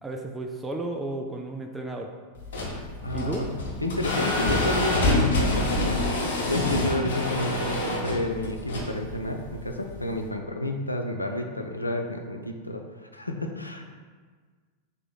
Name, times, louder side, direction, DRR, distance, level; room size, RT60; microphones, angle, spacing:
voice 1, 0.0-2.1 3.1-3.5, right 2 dB, 10° right, 2 dB, 0.3 m, -33 dB
sound 1, 2.4-10.3, left 1 dB, 60° left, 0.9 m, -27 dB
voice 2, 3.0-3.5 3.8-13.9, left 1 dB, 85° left, 3 dB, 0.4 m, -30 dB
3.6 x 2.9 x 4.0 m, 1.5 s
figure-of-eight pair, 90°, 0 cm